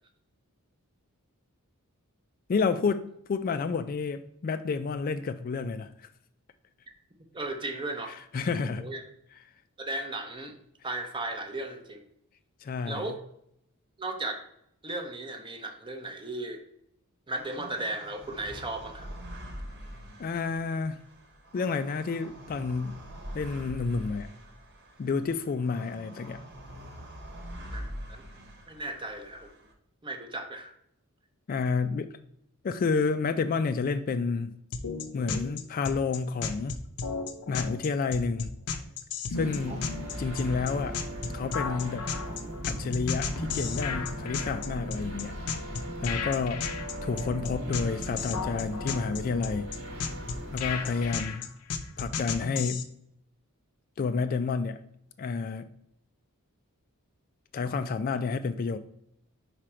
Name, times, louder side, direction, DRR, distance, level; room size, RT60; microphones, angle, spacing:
voice 1, 2.5-5.9 8.1-8.9 12.6-13.1 20.2-21.0 21.5-23.0 23.3-24.3 25.0-26.4 31.5-32.1 32.6-34.5 35.1-36.8 37.5-38.5 39.3-39.8 40.2-41.0 41.3-42.1 42.6-45.4 46.0-46.7 47.0-49.7 50.5-51.5 52.0-52.8 54.0-54.8 55.2-55.7 57.5-58.8, left 4 dB, 40° left, 10 dB, 0.3 m, -30 dB
voice 2, 7.3-8.2 8.8-9.0 9.8-10.6 10.8-12.0 12.9-13.2 14.0-14.4 14.8-16.6 17.3-19.1 27.7-27.8 28.1-28.2 28.7-29.5 30.0-30.7 39.7-39.8, right 2 dB, 20° right, 6 dB, 0.7 m, -35 dB
sound 1, 17.3-29.7, equal, 50° right, 1.2 m, -44 dB
sound 2, 34.7-52.8, left 5 dB, 85° left, 0.6 m, -34 dB
sound 3, 39.3-51.1, equal, 70° right, 1.3 m, -38 dB
5.0 x 4.9 x 4.3 m, 0.73 s
head